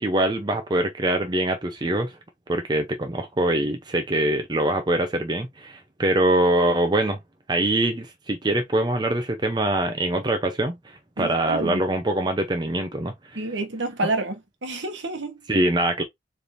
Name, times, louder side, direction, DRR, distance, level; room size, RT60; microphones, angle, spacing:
voice 1, 0.0-2.1 2.5-7.2 7.5-13.4 15.5-16.0, right 1 dB, 25° right, 0.6 m, -23 dB
voice 2, 11.2-11.8 13.4-14.4 14.6-15.3, right 2 dB, 75° right, 1.1 m, -28 dB
4.4 x 3.4 x 2.6 m
head